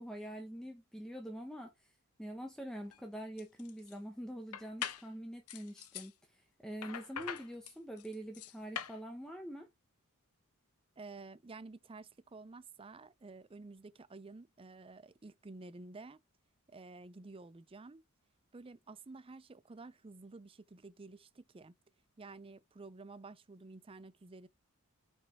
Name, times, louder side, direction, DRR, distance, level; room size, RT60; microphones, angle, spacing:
voice 1, 0.0-1.7 2.2-9.7, equal, 5° left, 1.1 m, -45 dB
sound 1, 2.8-3.0 3.4-3.9 4.5-5.1 5.5-6.1 6.8-9.0, left 9 dB, 85° left, 0.9 m, -43 dB
voice 2, 11.0-16.2 16.7-18.0 18.5-21.7 22.2-24.5, right 3 dB, 25° right, 0.5 m, -51 dB
5.9 x 5.4 x 3.4 m
head